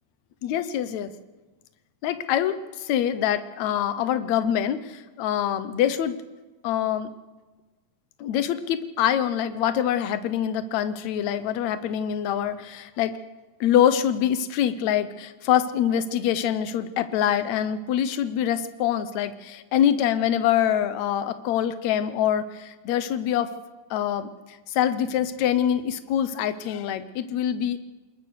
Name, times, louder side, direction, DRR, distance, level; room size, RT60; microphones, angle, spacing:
voice 1, 0.4-1.1 2.0-6.2 6.6-7.1 8.2-13.1 13.6-23.5 23.9-24.3 24.7-27.8, left 10 dB, 65° left, 12 dB, 2.0 m, -25 dB
28.0 x 20.0 x 6.5 m, 1.2 s
omnidirectional pair, 3.9 m